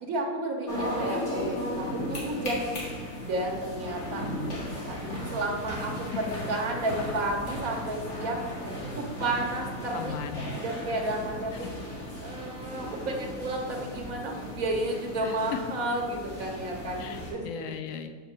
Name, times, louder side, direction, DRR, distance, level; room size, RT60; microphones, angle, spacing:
voice 1, 0.0-2.8 3.2-4.6 4.9-8.4 8.8-10.2 10.6-11.7 12.2-17.5, right 1 dB, 85° right, 0 dB, 1.4 m, -32 dB
sound 1, 0.7-17.3, equal, 60° left, 2.2 m, -36 dB
voice 2, 9.9-10.5 11.6-11.7 15.2-15.6 17.0-18.2, left 7 dB, 75° left, 7 dB, 1.0 m, -37 dB
5.3 x 4.4 x 6.2 m, 1.5 s
omnidirectional pair, 1.4 m